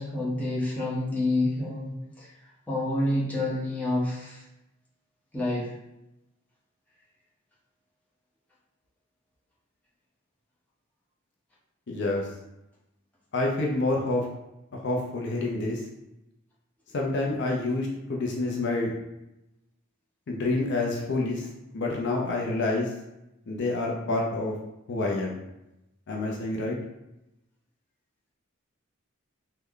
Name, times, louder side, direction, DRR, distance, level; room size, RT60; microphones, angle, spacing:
voice 1, 0.0-2.3 2.7-4.4 5.3-5.7, left 1 dB, 5° left, -7 dB, 0.8 m, -28 dB
voice 2, 11.9-12.3 13.3-14.3 14.7-15.8 16.9-18.9 20.3-21.5 21.7-22.9 23.5-24.6 24.9-25.4 26.1-26.8, left 2 dB, 55° left, -1 dB, 0.5 m, -28 dB
3.2 x 2.1 x 3.6 m, 0.90 s
head